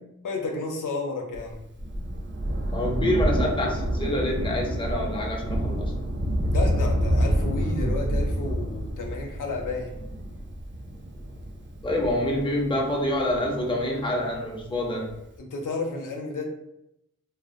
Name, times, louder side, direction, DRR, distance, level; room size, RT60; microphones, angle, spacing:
voice 1, 0.2-1.6 6.4-9.9 15.4-16.5, left 3 dB, 85° left, 1 dB, 0.5 m, -32 dB
Thunder, 1.3-14.2 15.1-15.2, equal, 40° right, 0.4 m, -28 dB
voice 2, 2.7-6.0 11.8-15.2, left 1 dB, 15° left, -1 dB, 0.5 m, -27 dB
2.4 x 2.0 x 2.5 m, 0.82 s
wide cardioid pair, 50°, 31 cm